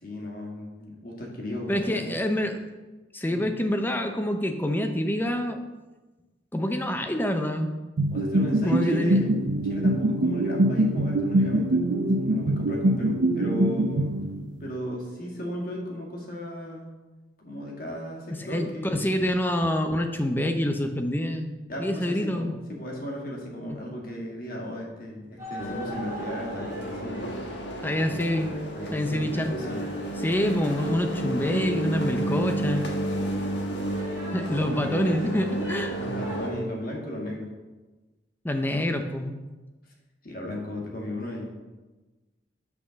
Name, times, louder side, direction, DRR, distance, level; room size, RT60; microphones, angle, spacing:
voice 1, 0.0-2.1 3.3-3.5 8.1-9.3 9.6-14.2 14.6-16.9 17.4-19.0 21.7-27.3 28.7-29.8 36.0-37.5 40.2-41.5, left 1 dB, 50° left, -1 dB, 2.0 m, -36 dB
voice 2, 1.7-2.6 3.1-5.6 6.5-7.8 8.6-9.2 18.4-21.5 21.8-22.5 27.8-28.5 28.9-29.5 30.2-32.8 34.3-35.9 38.4-39.3, left 1 dB, 10° left, 6 dB, 0.6 m, -26 dB
sound 1, 8.0-14.7, right 1 dB, 75° right, 0.6 m, -24 dB
sound 2, 25.4-36.4, right 1 dB, 15° right, 3.2 m, -44 dB
sound 3, 25.6-36.5, right 1 dB, 70° left, 1.3 m, -31 dB
6.5 x 6.0 x 6.4 m, 1.2 s
head